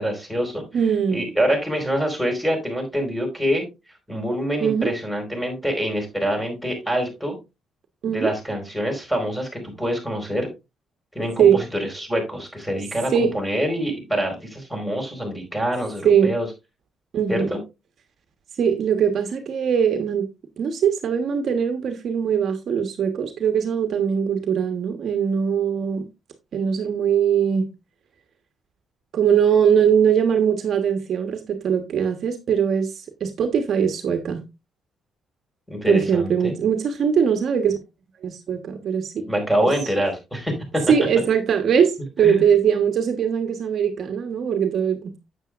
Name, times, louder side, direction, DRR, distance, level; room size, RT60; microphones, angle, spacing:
voice 1, 0.0-0.6 1.1-3.6 4.1-7.4 8.1-10.5 11.1-16.5 17.3-17.6 35.7-36.6 39.3-40.8 42.2-42.4, equal, ahead, 4.7 m, -25 dB
voice 2, 0.7-1.2 4.6-4.9 8.0-8.3 11.4-11.6 13.1-13.3 16.0-16.3 17.1-17.5 18.6-20.3 20.6-26.0 26.5-27.7 29.1-34.4 35.9-37.8 38.2-39.2 40.9-41.9 42.2-45.2, right 7 dB, 60° right, 1.3 m, -21 dB
9.2 x 8.2 x 2.5 m
cardioid pair, 90°, 0 cm